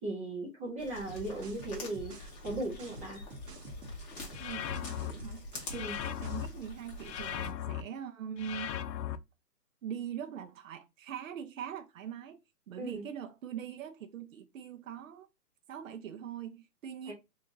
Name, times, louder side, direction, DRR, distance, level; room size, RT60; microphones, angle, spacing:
voice 1, 0.0-3.2 5.7-5.9 12.8-13.0 17.0-17.1, right 2 dB, 20° right, 1.2 m, -37 dB
sound 1, 0.8-7.5, left 2 dB, 25° left, 1.5 m, -46 dB
sound 2, 1.1-6.6, left 1 dB, 75° right, 1.3 m, -47 dB
sound 3, 4.3-5.1 5.7-6.5 7.0-7.8 8.4-9.2, left 10 dB, 85° left, 0.6 m, -37 dB
voice 2, 4.4-5.4 5.7-8.8 9.8-12.4 12.7-15.3 15.7-17.1, right 8 dB, 55° right, 0.7 m, -42 dB
3.6 x 3.5 x 2.6 m
hypercardioid pair, 155°, 49 cm